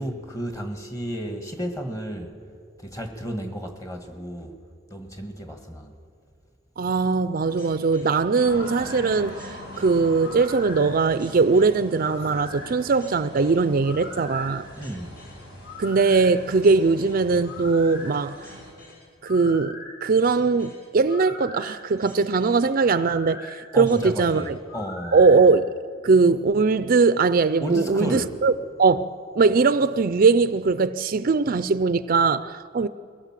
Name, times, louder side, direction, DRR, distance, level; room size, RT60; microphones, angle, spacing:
voice 1, 0.0-2.3 2.8-4.6 4.9-5.9 14.8-15.2 23.7-25.2 27.6-28.4, equal, 20° left, 1.7 m, -32 dB
voice 2, 6.8-14.6 15.8-18.5 19.2-24.6 25.1-25.7 26.0-28.5 28.8-32.9, right 4 dB, 50° right, 0.4 m, -20 dB
sound 1, 7.5-25.4, left 2 dB, 50° left, 7.6 m, -42 dB
sound 2, 8.4-18.7, equal, 70° left, 5.4 m, -42 dB
22.0 x 17.0 x 7.5 m
head